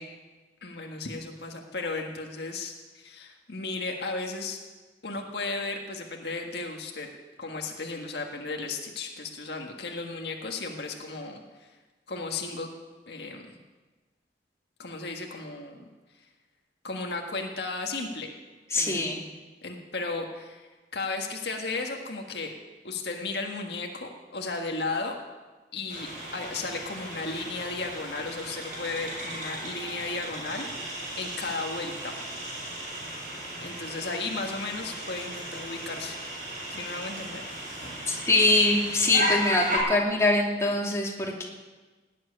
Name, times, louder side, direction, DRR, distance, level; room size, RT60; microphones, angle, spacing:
voice 1, 0.6-4.6 5.0-7.1 7.4-11.7 12.1-12.7 13.1-13.6 14.8-15.9 16.8-18.3 18.7-19.0 19.6-22.5 22.8-25.1 25.7-32.1 33.6-36.2 36.7-37.5 41.2-41.3, left 3 dB, 70° left, 2 dB, 1.7 m, -35 dB
voice 2, 18.7-19.2 38.1-41.4, left 2 dB, 15° left, -2 dB, 2.7 m, -23 dB
sound 1, 25.9-39.8, equal, 45° right, 7.4 m, -36 dB
18.5 x 7.7 x 9.9 m, 1.3 s
head